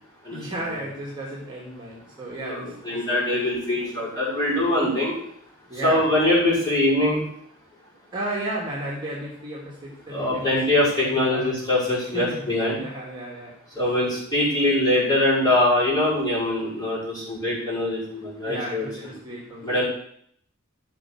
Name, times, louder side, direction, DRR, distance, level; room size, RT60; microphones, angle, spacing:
voice 1, 0.3-3.9 5.7-6.0 8.1-11.5 12.1-12.5 12.7-13.6 18.4-19.8, right 1 dB, 20° right, -4 dB, 2.4 m, -34 dB
voice 2, 2.4-5.2 5.7-7.2 10.1-12.8 13.8-18.9 19.6-19.8, left 1 dB, 20° left, -7 dB, 5.8 m, -23 dB
13.5 x 6.1 x 6.2 m, 0.67 s
head